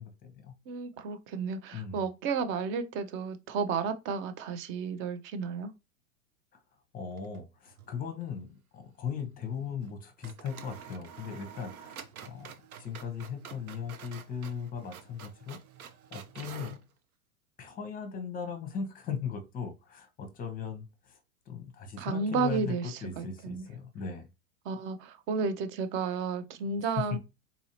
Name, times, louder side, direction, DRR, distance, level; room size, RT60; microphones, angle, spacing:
voice 1, 0.0-0.5 1.7-2.1 6.9-12.5 12.8-16.8 17.6-21.2 21.5-24.3 27.1-27.2, left 6 dB, 20° left, 0.7 m, -38 dB
voice 2, 0.7-5.7 22.0-23.7 24.7-27.2, right 5 dB, 30° right, 0.5 m, -32 dB
sound 1, 7.1-7.9 8.2-8.3 9.8-10.0 10.2-16.8, right 8 dB, 80° right, 0.7 m, -48 dB
4.0 x 2.6 x 2.8 m
hypercardioid pair, 110°, 42 cm